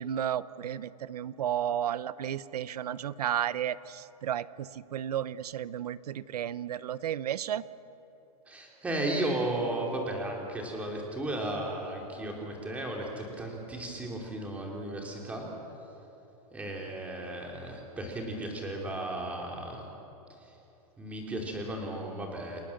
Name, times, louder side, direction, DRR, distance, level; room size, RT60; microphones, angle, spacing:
voice 1, 0.0-7.6, right 10 dB, 80° right, 17 dB, 0.9 m, -33 dB
voice 2, 8.5-15.4 16.5-19.8 21.0-22.6, right 1 dB, 5° right, 0 dB, 3.0 m, -35 dB
30.0 x 20.5 x 7.2 m, 3.0 s
supercardioid pair, 175°, 20 cm